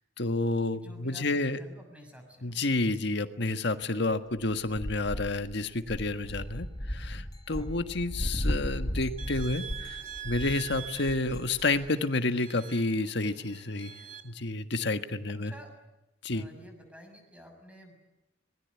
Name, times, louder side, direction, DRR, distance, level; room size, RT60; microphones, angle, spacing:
voice 1, 0.2-1.6 2.4-13.9 14.2-15.5 16.2-16.4, left 2 dB, 65° left, 8 dB, 1.6 m, -30 dB
voice 2, 0.7-2.6 7.5-7.7 15.4-15.7 16.3-17.9, equal, 5° right, 4 dB, 6.7 m, -50 dB
sound 1, 4.7-11.9, equal, 20° left, 1.3 m, -36 dB
sound 2, 9.2-14.2, right 9 dB, 45° right, 2.5 m, -44 dB
26.0 x 20.5 x 9.7 m, 0.94 s
head